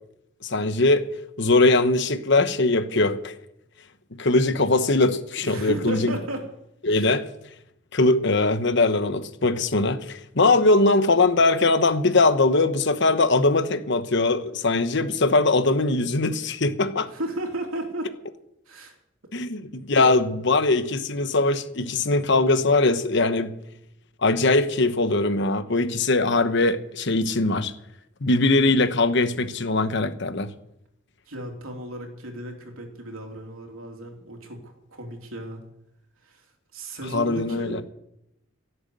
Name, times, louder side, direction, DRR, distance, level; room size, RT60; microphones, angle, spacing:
voice 1, 0.4-1.0 1.4-3.3 4.2-6.1 6.8-7.2 7.9-17.1 19.3-23.5 24.2-27.7 28.2-30.5 37.1-37.8, left 2 dB, 55° left, 1.1 m, -21 dB
voice 2, 5.4-6.5 6.9-7.2 17.1-18.1 18.7-18.9 20.0-20.2 31.3-35.6 36.2-37.8, right 1 dB, 85° right, 3.2 m, -34 dB
17.0 x 8.0 x 8.0 m
head